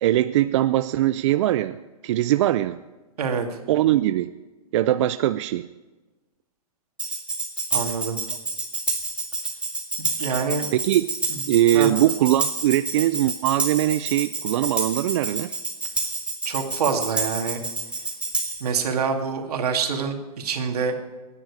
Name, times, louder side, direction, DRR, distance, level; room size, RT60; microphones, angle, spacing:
voice 1, 0.0-2.8 3.7-4.3 4.7-5.7 10.7-11.1 11.5-15.5, right 14 dB, 50° right, 12 dB, 0.4 m, -21 dB
Tambourine, 7.0-18.7, right 3 dB, 5° right, 2.0 m, -28 dB
voice 2, 7.7-8.2 10.0-10.7 11.3-11.4 11.7-11.9 16.5-17.6 18.6-20.9, right 6 dB, 80° right, 3 dB, 2.5 m, -26 dB
21.5 x 9.9 x 4.9 m, 1.2 s
hypercardioid pair, 150°, 20 cm